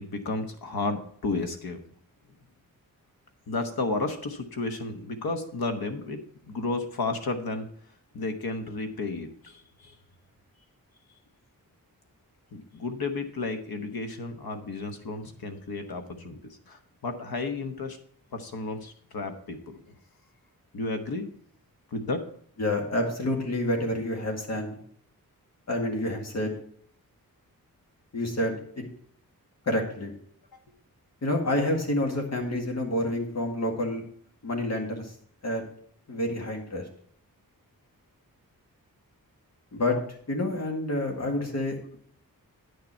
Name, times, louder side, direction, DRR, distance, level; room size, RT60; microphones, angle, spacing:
voice 1, 0.0-1.8 3.5-6.2 6.5-7.7 8.1-9.9 12.5-18.0 18.3-20.0 20.7-21.3 21.9-22.2 30.5-30.6, left 3 dB, 90° left, 6 dB, 1.2 m, -32 dB
voice 2, 22.6-24.8 25.7-26.5 28.1-28.6 29.7-30.1 31.2-34.0 34.4-35.1 35.4-35.6 36.1-36.8 39.7-40.0 40.3-42.0, left 1 dB, 45° left, 2 dB, 1.9 m, -28 dB
9.3 x 6.7 x 4.4 m, 0.63 s
wide cardioid pair, 160°, 35 cm